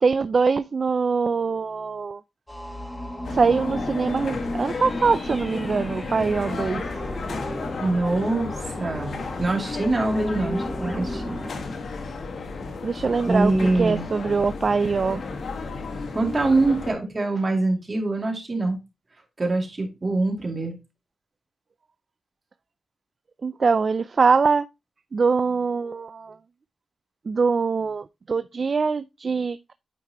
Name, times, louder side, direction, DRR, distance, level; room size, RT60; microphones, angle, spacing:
voice 1, 0.0-2.2 3.3-6.8 12.8-15.2 23.4-24.7 25.1-26.4 27.3-29.7, right 5 dB, 45° right, 0.3 m, -23 dB
sound 1, 2.5-11.5, equal, 5° left, 1.2 m, -34 dB
sound 2, 3.2-16.9, left 4 dB, 65° left, 1.4 m, -33 dB
voice 2, 7.8-8.5 8.8-11.4 13.3-14.0 16.1-18.8 19.4-20.8, right 2 dB, 30° right, 2.4 m, -24 dB
9.3 x 4.7 x 2.9 m
wide cardioid pair, 130°, 0 cm